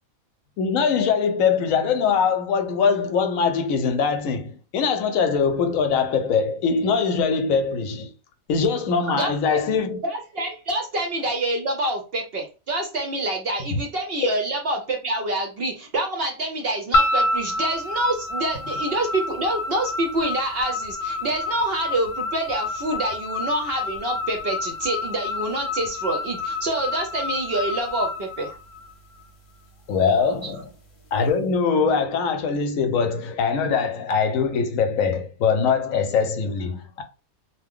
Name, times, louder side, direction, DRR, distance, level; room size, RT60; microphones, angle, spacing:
voice 1, 0.6-8.1 8.5-10.0 13.7-13.8 29.9-30.7 31.1-37.0, left 5 dB, 70° left, 0.9 m, -22 dB
voice 2, 9.1-9.6 10.0-28.6 30.4-30.5, right 2 dB, 60° right, 0.7 m, -27 dB
sound 1, 16.9-29.2, left 2 dB, 45° left, 0.8 m, -28 dB
2.8 x 2.1 x 3.5 m
omnidirectional pair, 1.5 m